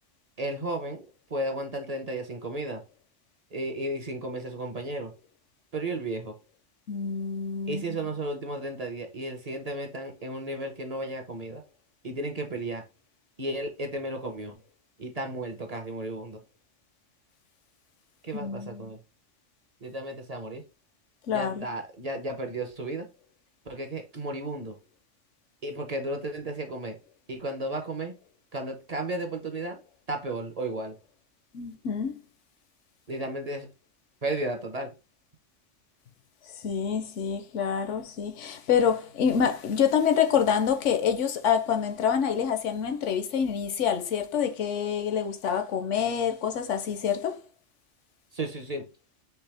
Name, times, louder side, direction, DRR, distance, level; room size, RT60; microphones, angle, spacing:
voice 1, 0.4-2.8 3.5-5.1 5.7-6.3 7.7-11.6 12.0-12.8 13.4-14.6 15.0-16.4 18.2-19.0 19.8-20.6 21.3-23.1 23.7-24.8 25.6-27.0 27.3-28.1 28.5-29.8 30.1-30.9 33.1-33.7 34.2-34.9 48.3-48.8, right 1 dB, 35° right, 0.8 m, -33 dB
voice 2, 6.9-7.8 18.3-18.9 21.3-21.7 31.5-32.2 36.5-47.4, left 7 dB, 75° left, 1.1 m, -27 dB
4.6 x 3.2 x 3.4 m
omnidirectional pair, 1.3 m